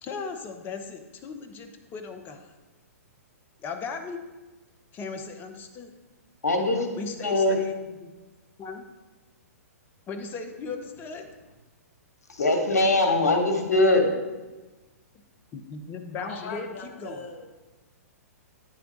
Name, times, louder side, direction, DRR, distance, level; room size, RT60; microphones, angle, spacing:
voice 1, 0.0-2.5 3.6-4.2 4.9-5.9 7.0-8.1 8.6-8.8 10.1-11.3 15.5-17.2, left 4 dB, 25° left, 6 dB, 0.7 m, -37 dB
voice 2, 6.4-6.9 7.2-7.6 12.3-14.1, left 2 dB, 80° left, 3 dB, 1.1 m, -21 dB
voice 3, 16.2-17.5, left 4 dB, 55° left, 3 dB, 1.1 m, -39 dB
9.9 x 3.4 x 3.9 m, 1.2 s
figure-of-eight pair, 115°, 8 cm